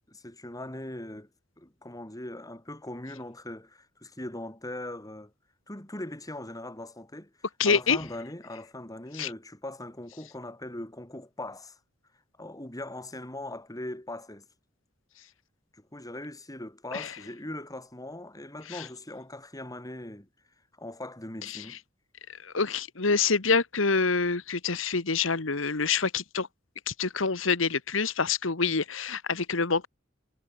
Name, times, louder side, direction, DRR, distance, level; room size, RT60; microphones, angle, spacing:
voice 1, 0.1-1.3 1.6-5.3 5.7-7.3 7.7-11.8 12.4-14.5 15.7-20.3 20.8-21.8, left 1 dB, 20° left, 4.1 m, -40 dB
voice 2, 7.6-8.0 9.1-9.3 16.9-17.2 18.7-18.9 21.4-21.8 22.3-26.5 26.9-29.9, left 5 dB, 80° left, 1.6 m, -27 dB
head